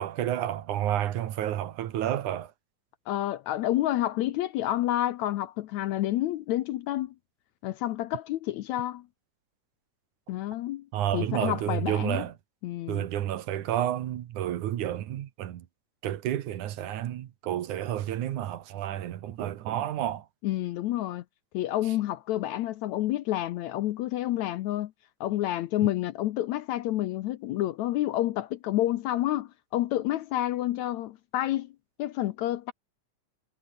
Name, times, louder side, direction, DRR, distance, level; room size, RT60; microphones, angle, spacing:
voice 1, 0.0-2.5 10.9-12.3 12.9-15.7 16.0-20.3, right 12 dB, 70° right, 2.6 m, -30 dB
voice 2, 3.1-7.1 7.6-9.1 10.3-10.9 11.1-12.2 12.6-13.1 20.4-21.2 21.5-24.9 25.2-31.7 32.0-32.7, left 14 dB, 70° left, 1.8 m, -29 dB
omnidirectional pair, 3.8 m